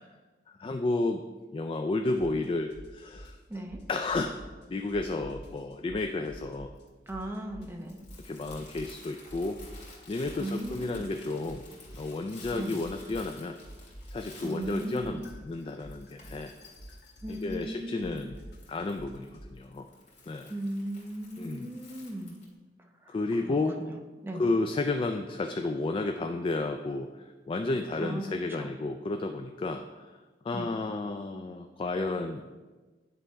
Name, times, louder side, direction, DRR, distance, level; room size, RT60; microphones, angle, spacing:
voice 1, 0.6-1.2 1.5-3.4 3.9-4.4 4.7-6.7 8.2-9.6 10.1-11.7 11.9-13.6 14.1-16.5 17.3-18.4 18.7-19.9 20.3-20.5 21.4-21.7 23.1-23.8 24.3-30.2 30.4-32.4, left 2 dB, 30° left, 5 dB, 0.3 m, -32 dB
sound 1, 2.2-2.4 2.7-4.6 4.9-6.8 7.1-9.0 9.2-13.4 13.6-19.5, equal, 65° left, 1.2 m, -47 dB
voice 2, 3.5-3.8 7.1-8.0 10.4-11.0 12.5-12.8 14.4-15.2 17.2-18.2 20.5-22.4 23.0-23.1 23.4-24.5 28.0-28.2 28.6-28.7 30.5-30.7, right 1 dB, 15° right, 2 dB, 0.7 m, -37 dB
Crumpling crinkling, 6.1-22.5, left 3 dB, 45° left, 2.2 m, -54 dB
9.9 x 3.4 x 4.7 m, 1.3 s
head